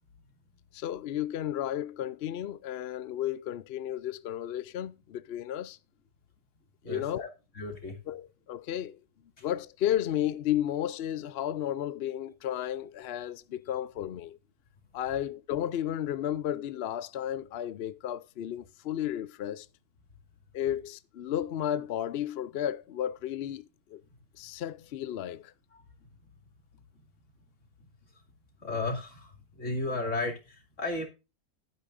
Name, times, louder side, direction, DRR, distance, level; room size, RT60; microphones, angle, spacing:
voice 1, 0.7-5.8 6.8-7.2 8.1-9.0 9.4-14.4 14.9-19.7 20.5-24.0 24.4-25.5, left 11 dB, 70° left, 0.6 m, -33 dB
voice 2, 6.8-7.3 7.5-8.0 9.4-9.5 25.7-25.8 28.6-31.1, left 2 dB, 50° left, 3.0 m, -34 dB
12.0 x 9.9 x 2.5 m
omnidirectional pair, 1.7 m